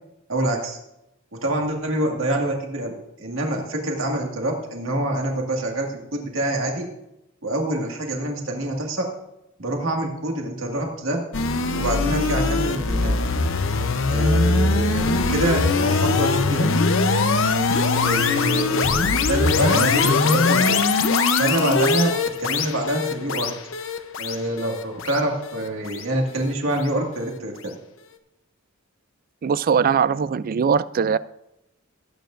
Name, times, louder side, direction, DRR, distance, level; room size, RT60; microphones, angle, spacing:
voice 1, 0.3-0.8 1.4-6.9 7.4-9.1 9.6-11.2 11.7-13.2 14.1-16.7 18.0-20.8 21.4-22.1 22.4-23.5 24.2-27.7, right 1 dB, 70° right, 1 dB, 2.0 m, -26 dB
sound 1, 11.3-26.5, left 4 dB, 70° left, 0.8 m, -21 dB
voice 2, 29.4-31.2, right 6 dB, 45° right, 17 dB, 0.3 m, -20 dB
18.5 x 9.1 x 2.6 m, 0.86 s
head